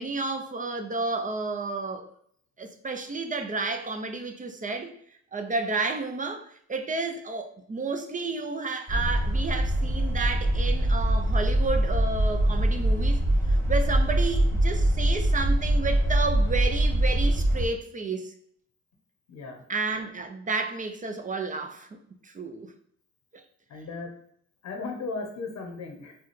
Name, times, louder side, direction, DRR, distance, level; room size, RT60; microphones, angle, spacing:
voice 1, 0.0-2.1 2.6-4.9 5.3-13.2 13.7-18.3 19.7-22.0 22.2-22.7, right 3 dB, 25° right, 0.5 m, -31 dB
sound 1, 8.9-17.7, right 1 dB, 10° left, 1.2 m, -23 dB
voice 2, 19.3-19.6 23.7-24.1 24.6-26.2, left 3 dB, 65° left, 0.8 m, -36 dB
4.1 x 2.2 x 3.1 m
cardioid pair, 90°, 30 cm